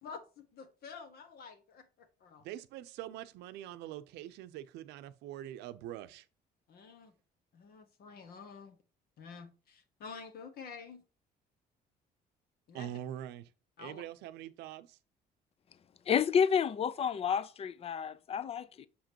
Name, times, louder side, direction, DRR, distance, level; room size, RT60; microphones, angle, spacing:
voice 1, 0.0-2.4 6.7-7.1 7.5-8.8 9.2-11.0 12.7-12.9 13.8-14.0, left 5 dB, 65° left, 1.5 m, -49 dB
voice 2, 2.4-6.3 12.7-13.5 13.8-15.0, right 12 dB, 85° right, 0.6 m, -44 dB
voice 3, 16.1-18.9, left 7 dB, 35° left, 0.5 m, -30 dB
6.9 x 5.1 x 2.9 m
cardioid pair, 110°, 17 cm